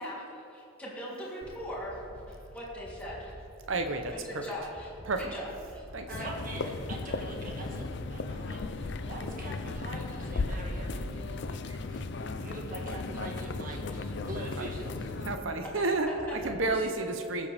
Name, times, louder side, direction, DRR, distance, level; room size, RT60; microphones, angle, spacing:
voice 1, 0.0-2.0 2.3-3.4 4.2-5.4 5.7-6.3 15.7-16.5, equal, 5° left, -8 dB, 3.0 m, -40 dB
sound 1, 1.4-16.7, equal, 15° right, 0.7 m, -50 dB
voice 2, 3.7-4.1 5.0-5.2 5.9-6.1 14.6-14.7 15.2-17.5, right 3 dB, 65° right, 6 dB, 0.8 m, -30 dB
sound 2, 6.1-15.4, left 3 dB, 55° left, 0.5 m, -36 dB
voice 3, 6.1-11.6 11.8-15.3 16.6-16.7, right 1 dB, 40° right, 0 dB, 1.6 m, -43 dB
21.0 x 7.5 x 3.5 m, 2.8 s
head